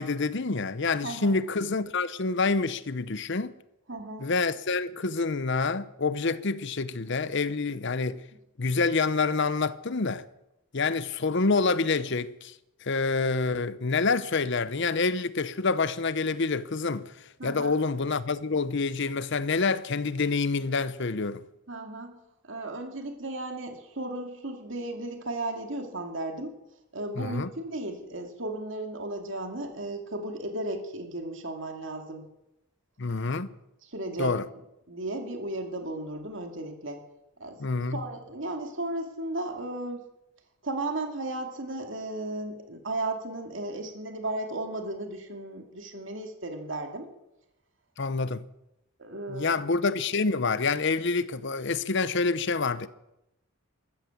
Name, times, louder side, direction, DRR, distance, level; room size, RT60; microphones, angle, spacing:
voice 1, 0.0-3.5 4.2-8.2 8.6-10.3 10.7-12.5 12.8-17.1 17.4-21.4 27.2-27.5 33.0-33.5 34.2-34.5 37.6-38.0 48.0-48.4 49.3-52.9, left 4 dB, 55° left, 0.8 m, -27 dB
voice 2, 1.0-1.3 3.9-4.3 17.4-17.7 21.7-22.2 22.4-26.5 26.9-32.3 33.9-34.4 34.9-37.0 37.4-37.6 37.9-40.0 40.6-47.1 49.0-49.6, right 2 dB, 60° right, 2.5 m, -35 dB
14.0 x 13.5 x 7.2 m
head